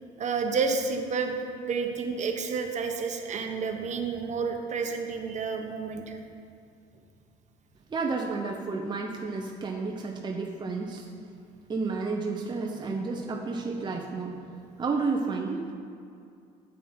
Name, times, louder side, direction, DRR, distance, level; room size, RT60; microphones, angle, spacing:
voice 1, 0.2-6.2, right 5 dB, 45° right, 4 dB, 1.2 m, -30 dB
voice 2, 7.9-11.1 11.7-15.6, right 4 dB, 30° right, 0 dB, 0.9 m, -31 dB
8.8 x 7.8 x 4.5 m, 2.5 s
supercardioid pair, 85°, 16 cm